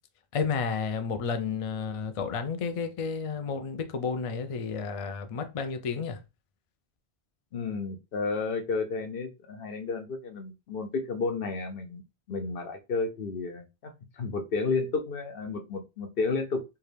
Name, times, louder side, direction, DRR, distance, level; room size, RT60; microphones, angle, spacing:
voice 1, 0.3-6.2, left 5 dB, 50° left, 0.4 m, -31 dB
voice 2, 7.5-12.0 12.3-16.6, left 4 dB, 65° left, 0.9 m, -32 dB
4.5 x 2.3 x 3.3 m
omnidirectional pair, 1.1 m